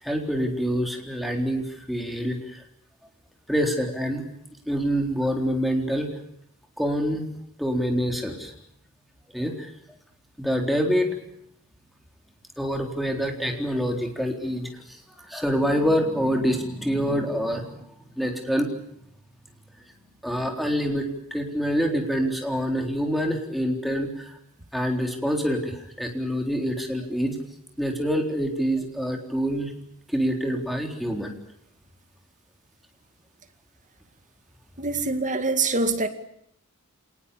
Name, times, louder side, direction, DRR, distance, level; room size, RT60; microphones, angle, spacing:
voice 1, 0.0-2.6 3.5-4.2 4.7-6.1 6.8-7.2 7.6-8.5 9.3-9.7 10.4-11.2 12.6-17.9 18.2-18.7 20.2-24.3 24.7-27.4 27.8-29.7 30.1-31.4, equal, ahead, 4.0 m, -26 dB
voice 2, 34.8-36.1, right 3 dB, 35° right, 2.2 m, -24 dB
28.0 x 19.5 x 8.6 m
head